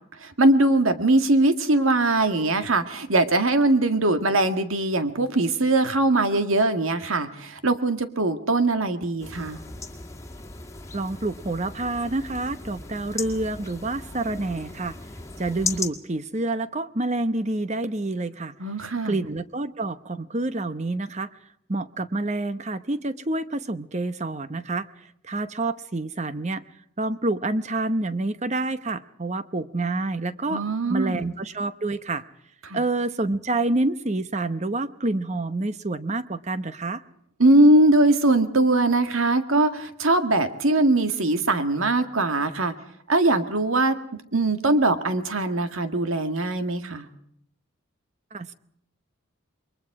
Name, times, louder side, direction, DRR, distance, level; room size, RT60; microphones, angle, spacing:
voice 1, 0.2-9.6 18.6-19.2 30.5-31.2 32.6-32.8 37.4-42.7 43.1-47.1, right 2 dB, 80° right, 8 dB, 1.8 m, -21 dB
sound 1, 9.2-15.9, left 3 dB, 15° left, 1.9 m, -37 dB
voice 2, 10.9-15.0 15.4-18.5 19.0-21.3 21.7-24.9 25.2-26.6 27.0-30.6 30.9-32.2 32.7-37.0 48.3-48.5, right 2 dB, 35° right, 13 dB, 0.9 m, -28 dB
28.5 x 22.5 x 4.8 m, 0.68 s
head